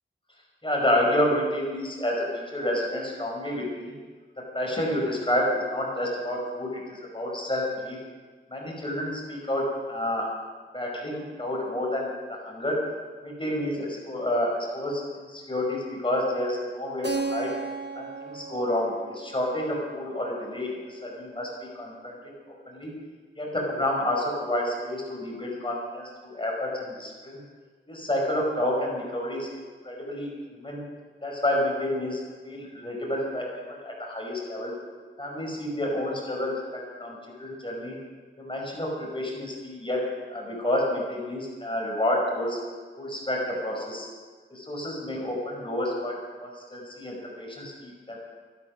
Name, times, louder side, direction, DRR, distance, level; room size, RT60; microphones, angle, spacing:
voice 1, 0.6-3.9 4.3-8.0 8.5-10.3 10.7-12.8 13.2-17.5 17.9-22.2 22.7-22.9 23.4-27.4 27.9-30.8 31.2-34.7 35.2-38.0 38.4-40.0 40.3-42.6 43.0-44.1 44.5-48.2, left 1 dB, 25° left, -2 dB, 5.0 m, -29 dB
Keyboard (musical), 17.0-21.6, right 4 dB, 60° right, 1.1 m, -36 dB
14.0 x 12.0 x 6.3 m, 1.5 s
wide cardioid pair, 70°, 20 cm